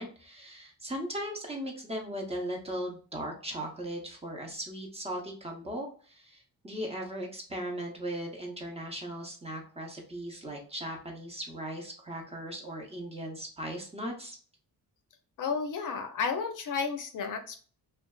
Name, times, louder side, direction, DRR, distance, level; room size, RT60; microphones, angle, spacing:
voice 1, 0.0-14.4, equal, 15° right, 0 dB, 0.6 m, -38 dB
voice 2, 15.4-17.6, left 5 dB, 60° left, 6 dB, 0.5 m, -32 dB
2.5 x 2.3 x 2.2 m, 0.41 s
cardioid pair, 110°, 36 cm